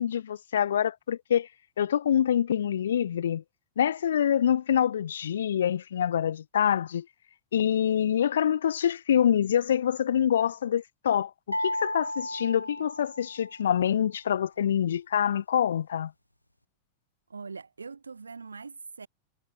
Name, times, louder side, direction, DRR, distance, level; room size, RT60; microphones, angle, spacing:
voice 1, 0.0-1.5 1.8-3.4 3.8-7.1 7.5-16.1, left 9 dB, 65° left, 1.8 m, -26 dB
sound 1, 11.5-13.7, left 1 dB, 85° left, 1.6 m, -34 dB
voice 2, 17.3-19.1, right 4 dB, 75° right, 5.6 m, -42 dB
figure-of-eight pair, 90°, 0 cm